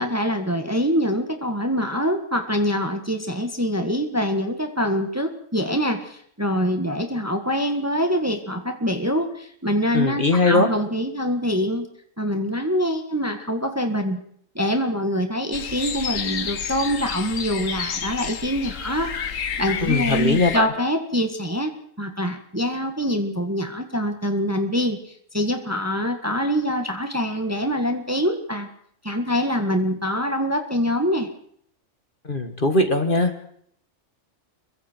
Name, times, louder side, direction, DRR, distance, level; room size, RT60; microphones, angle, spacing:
voice 1, 0.0-11.9 12.2-14.2 14.5-21.7 22.0-28.7 29.0-31.3, equal, 10° right, 5 dB, 1.7 m, -24 dB
voice 2, 9.9-10.7 19.8-20.7 32.2-33.3, left 2 dB, 40° left, 6 dB, 2.2 m, -20 dB
sound 1, 15.5-20.6, left 7 dB, 80° left, 1.6 m, -30 dB
26.0 x 23.0 x 4.6 m, 0.66 s
omnidirectional pair, 1.3 m